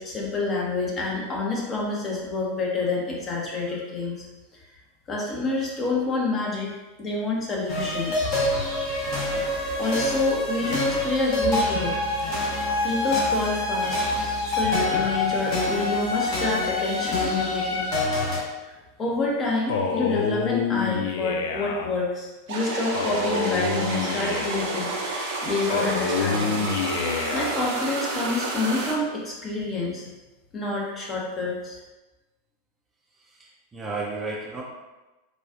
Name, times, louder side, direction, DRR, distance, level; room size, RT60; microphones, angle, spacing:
voice 1, 0.0-4.3 5.1-6.7 7.0-8.3 9.3-9.5 9.7-12.0 12.8-14.0 14.5-17.9 18.7-26.6 27.3-30.0 30.5-31.8, left 3 dB, 30° left, -3 dB, 0.9 m, -28 dB
sound 1, 7.7-18.4, left 2 dB, 45° left, 1.2 m, -26 dB
Male speech man speaking, 19.7-21.9 22.9-24.8 25.7-27.7, left 5 dB, 65° left, 0.3 m, -27 dB
sound 2, 22.5-28.9, right 3 dB, 65° right, 0.8 m, -30 dB
voice 2, 33.2-34.6, right 3 dB, 20° right, -3 dB, 0.6 m, -33 dB
4.1 x 2.3 x 2.4 m, 1.1 s
figure-of-eight pair, 90°, 0 cm